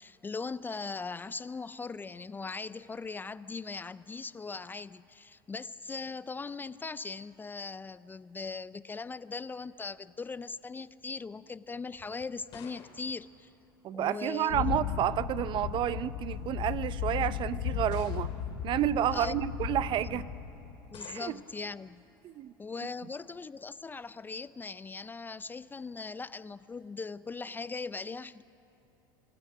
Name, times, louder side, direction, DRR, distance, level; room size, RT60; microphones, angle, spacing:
voice 1, 0.0-13.5 13.9-14.8 19.1-19.4 20.1-20.2 20.9-22.0 22.6-28.4, left 4 dB, 15° left, 16 dB, 0.4 m, -40 dB
sound 1, 11.9-14.3 15.3-15.8 16.6-16.7 17.9-18.7 20.9-21.7, left 7 dB, 50° left, 2.3 m, -53 dB
voice 2, 13.8-18.3 18.6-20.3 21.1-21.4 22.2-22.5, right 11 dB, 45° right, 16 dB, 0.6 m, -30 dB
sound 2, 14.5-20.8, left 10 dB, 65° left, 1.0 m, -35 dB
24.5 x 12.5 x 9.2 m, 2.9 s
hypercardioid pair, 95°, 12 cm